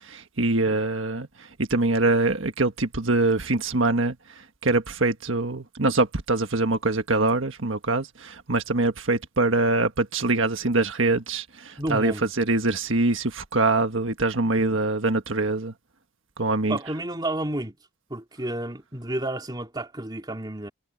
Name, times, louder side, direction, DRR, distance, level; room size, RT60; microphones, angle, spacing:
voice 1, 0.1-1.3 1.6-4.1 4.6-15.7 16.4-16.8, right 2 dB, 65° right, 1.6 m, -24 dB
voice 2, 11.8-12.3 16.7-17.7 18.1-20.7, right 1 dB, 20° right, 2.8 m, -31 dB
head